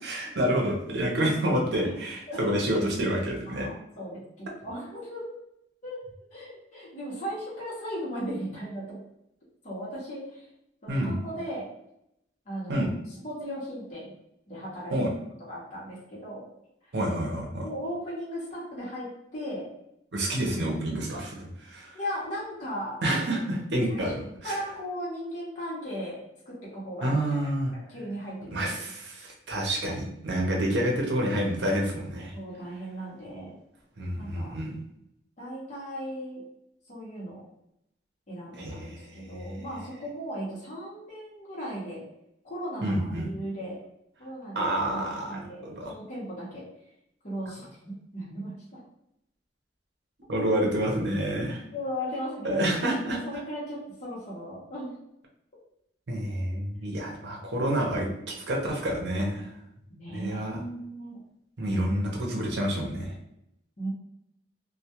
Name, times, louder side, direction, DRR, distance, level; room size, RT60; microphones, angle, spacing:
voice 1, 0.0-3.7 10.9-11.2 12.7-12.9 14.9-15.1 16.9-17.7 20.1-22.0 23.0-24.2 24.4-24.6 27.0-27.7 28.5-32.4 34.0-34.7 38.6-39.2 42.8-43.3 44.5-45.9 50.3-51.6 52.4-53.2 56.1-59.5 60.1-60.6 61.6-63.1, right 1 dB, 65° right, -1 dB, 0.7 m, -28 dB
voice 2, 3.5-5.3 5.8-6.0 6.3-9.0 9.6-10.5 10.8-11.7 12.5-12.9 13.2-14.1 14.5-15.0 15.5-16.4 16.8-16.9 17.6-19.7 21.9-23.0 23.9-27.1 27.4-28.7 32.3-33.6 34.2-34.5 35.4-36.4 36.9-37.4 38.3-42.0 42.4-43.8 44.2-46.6 47.2-48.5 51.7-52.7 53.1-54.9 59.9-61.2 63.8-63.9, equal, 45° left, -7 dB, 0.8 m, -37 dB
2.2 x 2.1 x 2.8 m, 0.80 s
head